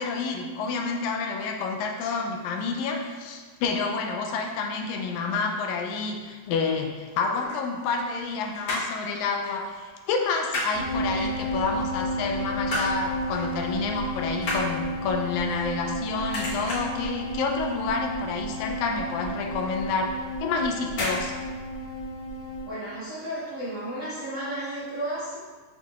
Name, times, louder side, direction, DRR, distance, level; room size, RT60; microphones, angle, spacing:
voice 1, 0.0-21.4, left 4 dB, 85° left, 3 dB, 1.9 m, -29 dB
sound 1, 7.4-8.3 8.5-9.0 9.4-9.6 9.9-10.7 11.2-11.7 12.2-13.0 13.3-13.6 13.9-16.0 16.3-17.0 17.5-17.8 18.1-18.2 18.5-18.6 19.1-19.2 20.0-20.3 20.9-21.2 21.5-21.6, left 1 dB, 55° left, 1.9 m, -32 dB
sound 2, 10.7-22.6, equal, 70° right, 2.4 m, -32 dB
voice 2, 22.6-25.4, right 1 dB, 85° right, -12 dB, 0.6 m, -33 dB
8.0 x 2.8 x 2.4 m, 1.4 s
omnidirectional pair, 3.3 m